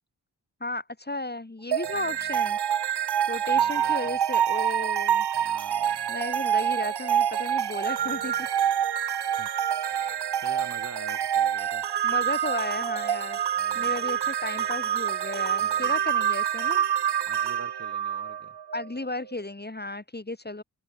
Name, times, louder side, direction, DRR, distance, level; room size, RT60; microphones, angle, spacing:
voice 1, 0.6-2.6 3.3-5.2 6.1-8.5 10.0-10.2 12.0-13.4 13.7-16.8 18.7-20.6, left 2 dB, 25° left, 3.5 m, -34 dB
sound 1, 1.7-18.9, right 9 dB, 80° right, 0.9 m, -26 dB
voice 2, 3.5-4.2 5.3-6.1 8.0-8.3 9.4-9.5 9.8-11.9 13.6-14.0 14.6-14.7 15.6-16.0 17.3-18.6, right 3 dB, 40° right, 2.6 m, -46 dB
open air
wide cardioid pair, 90°, 40 cm